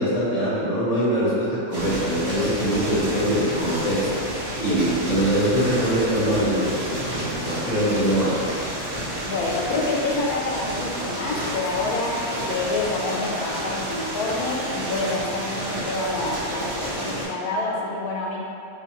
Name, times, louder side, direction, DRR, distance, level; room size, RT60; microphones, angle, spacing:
voice 1, 0.0-4.1 4.6-8.3, right 1 dB, 30° left, -9 dB, 0.9 m, -23 dB
sound 1, 1.7-17.2, right 1 dB, 50° right, 1.1 m, -30 dB
voice 2, 9.2-18.4, left 2 dB, 85° left, -2 dB, 1.1 m, -27 dB
3.7 x 2.8 x 2.9 m, 2.6 s
omnidirectional pair, 1.5 m